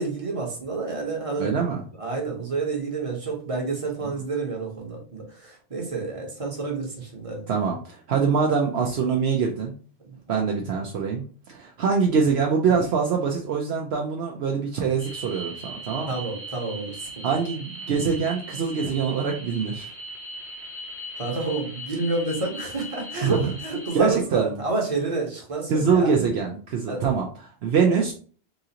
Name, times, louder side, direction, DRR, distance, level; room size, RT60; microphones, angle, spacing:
voice 1, 0.0-1.6 2.0-7.5 10.1-10.2 16.1-17.2 21.2-26.1 26.9-27.1, right 3 dB, 35° right, 0 dB, 1.0 m, -29 dB
voice 2, 1.4-1.8 4.0-4.1 7.5-9.7 10.3-16.1 17.2-19.9 23.2-23.5 23.9-24.6 25.7-27.3 27.6-28.1, right 5 dB, 75° right, 1 dB, 0.9 m, -24 dB
sound 1, 15.0-24.0, right 1 dB, 15° right, 0.6 m, -39 dB
4.0 x 2.5 x 2.8 m, 0.41 s
omnidirectional pair, 1.1 m